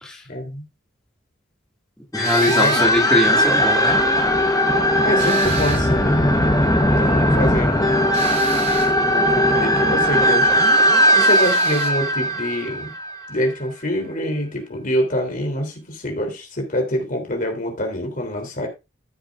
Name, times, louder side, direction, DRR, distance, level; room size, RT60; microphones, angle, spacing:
voice 1, 0.3-0.6 2.5-2.9 5.0-6.2 6.9-8.0 9.0-10.8 11.1-12.9 13.3-18.7, equal, 45° left, 3 dB, 3.3 m, -25 dB
sound 1, 2.1-13.4, equal, 20° left, 1.1 m, -18 dB
voice 2, 2.1-4.0, left 1 dB, 5° left, -2 dB, 2.2 m, -22 dB
sound 2, 2.2-2.9 5.2-6.0 8.1-9.0 11.2-12.0, right 3 dB, 35° right, 2.2 m, -32 dB
14.0 x 7.5 x 2.5 m, 0.25 s
head